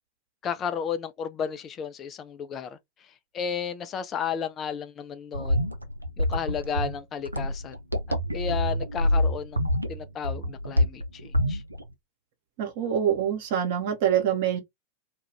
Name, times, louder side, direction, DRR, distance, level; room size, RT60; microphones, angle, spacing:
voice 1, 0.4-2.8 3.3-5.6 6.2-7.8 8.3-9.6 9.9-11.6, left 7 dB, 30° left, 0.4 m, -33 dB
sound 1, 5.3-11.9, left 1 dB, 85° right, 0.4 m, -27 dB
voice 2, 12.6-14.6, right 9 dB, 50° right, 0.9 m, -25 dB
2.3 x 2.2 x 3.2 m
figure-of-eight pair, 90°, 0 cm